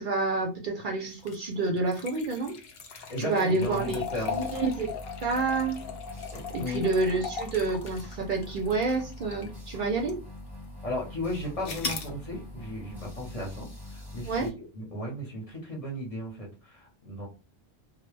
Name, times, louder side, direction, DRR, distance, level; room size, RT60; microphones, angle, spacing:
voice 1, 0.0-2.5 3.2-4.9 5.2-5.8 6.5-10.2 14.2-14.5, right 3 dB, 60° right, 1 dB, 0.6 m, -28 dB
sound 1, 1.1-9.6 10.1-10.2 11.6-12.1, left 5 dB, 70° left, 0.7 m, -39 dB
voice 2, 2.9-4.5 6.3-6.8 10.8-17.3, left 1 dB, 35° left, -2 dB, 0.8 m, -35 dB
sound 2, 3.6-14.5, left 1 dB, ahead, 0.9 m, -43 dB
2.1 x 2.1 x 3.1 m, 0.30 s
omnidirectional pair, 1.1 m